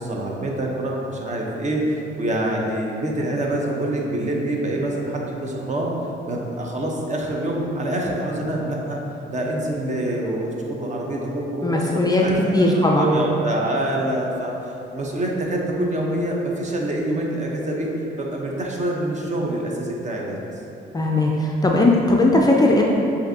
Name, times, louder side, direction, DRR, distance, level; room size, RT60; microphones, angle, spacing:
voice 1, 0.0-5.9 6.3-9.0 9.3-17.9 18.2-20.4, right 1 dB, 35° right, -1 dB, 0.8 m, -26 dB
voice 2, 11.6-12.2 12.5-13.1 20.9-22.8, left 2 dB, 20° left, -1 dB, 0.4 m, -18 dB
7.4 x 2.6 x 2.7 m, 2.9 s
cardioid pair, 90°, 20 cm